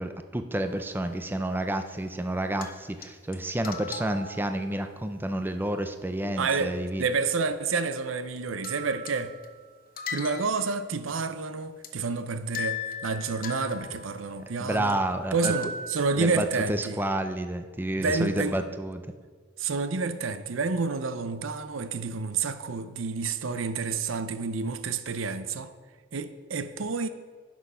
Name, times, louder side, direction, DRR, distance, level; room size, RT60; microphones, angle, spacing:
voice 1, 0.0-7.0 14.6-15.5 16.2-19.0, right 1 dB, 10° right, 0.5 m, -30 dB
sound 1, 0.6-1.0 2.6-3.1 3.3-3.4 3.6-4.9 8.4-8.5 8.6-9.7 10.0-10.8 11.1-11.2 11.8-11.9 12.5-14.6 14.9-15.0 15.4-16.6, left 4 dB, 45° left, 0.8 m, -38 dB
voice 2, 6.4-9.3 10.1-15.0 15.3-17.0 18.0-18.6 19.6-25.7 26.1-27.1, right 4 dB, 80° right, 0.6 m, -29 dB
10.5 x 6.2 x 5.6 m
head